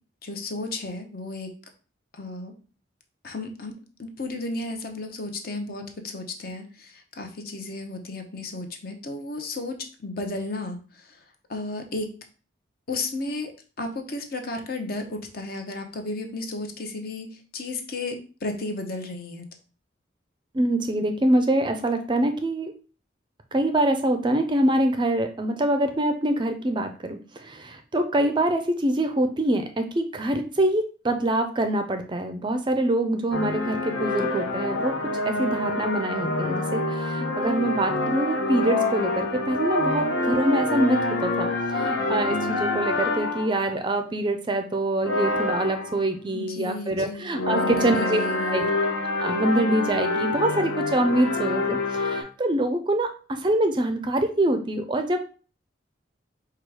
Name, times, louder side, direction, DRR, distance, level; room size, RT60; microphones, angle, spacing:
voice 1, 0.2-1.5 2.1-2.5 3.2-11.2 11.5-12.1 12.9-19.5 46.3-48.7, left 2 dB, 50° left, 5 dB, 0.7 m, -34 dB
voice 2, 20.5-22.7 23.5-35.0 35.3-48.2 48.5-48.7 49.2-55.2, right 1 dB, 25° right, 7 dB, 0.4 m, -25 dB
sound 1, 33.3-43.7 45.0-46.0 47.3-52.2, left 2 dB, 80° left, 1.0 m, -26 dB
4.7 x 2.3 x 4.7 m, 0.37 s
head